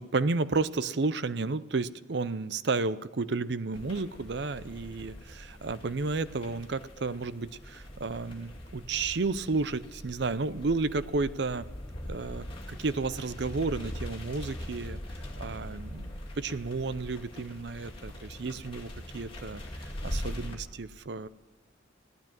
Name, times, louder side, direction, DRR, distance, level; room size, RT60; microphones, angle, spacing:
voice 1, 0.0-11.7 12.0-15.0 15.4-16.1 16.4-21.3, right 3 dB, 60° right, 15 dB, 0.6 m, -32 dB
sound 1, 3.7-20.6, left 1 dB, 25° left, 2.6 m, -42 dB
16.0 x 12.0 x 7.4 m, 1.2 s
head